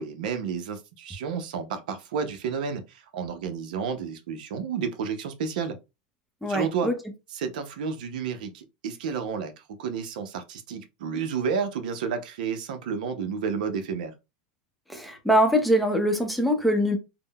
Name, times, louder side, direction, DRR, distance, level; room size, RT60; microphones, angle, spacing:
voice 1, 0.0-5.8 6.5-6.9 7.3-14.1, right 6 dB, 80° right, 0.6 m, -31 dB
voice 2, 6.4-6.9 14.9-17.0, equal, ahead, 0.6 m, -23 dB
3.6 x 2.1 x 2.2 m
supercardioid pair, 130°, 5 cm